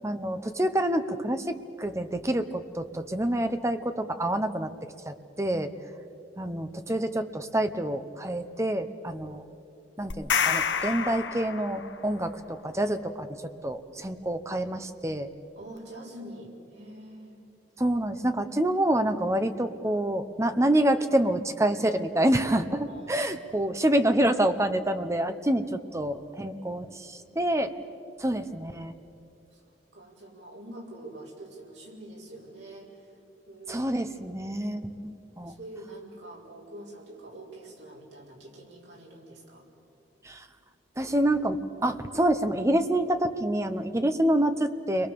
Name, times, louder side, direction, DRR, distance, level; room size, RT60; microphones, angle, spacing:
voice 1, 0.0-4.7 5.1-5.7 6.4-9.4 10.0-13.3 13.6-15.3 17.8-27.7 28.2-28.9 33.7-35.5 40.2-40.4 41.0-45.1, right 1 dB, 15° right, 8 dB, 0.9 m, -27 dB
sound 1, 10.1-12.1, left 7 dB, 85° left, 1.1 m, -28 dB
voice 2, 15.5-17.4 22.9-23.7 27.0-27.5 29.5-29.6 29.9-33.1 33.5-33.9 35.4-39.6, right 1 dB, 75° right, -2 dB, 5.1 m, -45 dB
29.5 x 22.5 x 7.0 m, 2.7 s
head